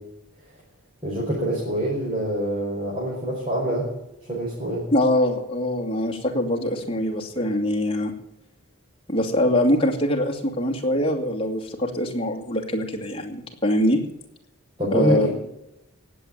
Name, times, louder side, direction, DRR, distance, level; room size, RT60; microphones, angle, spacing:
voice 1, 1.0-3.9 4.2-4.8 14.8-15.3, right 1 dB, 25° right, -6 dB, 5.2 m, -25 dB
voice 2, 4.9-8.1 9.1-14.0 14.9-15.3, left 1 dB, 25° left, 1 dB, 2.4 m, -23 dB
18.5 x 8.1 x 8.8 m, 0.88 s
head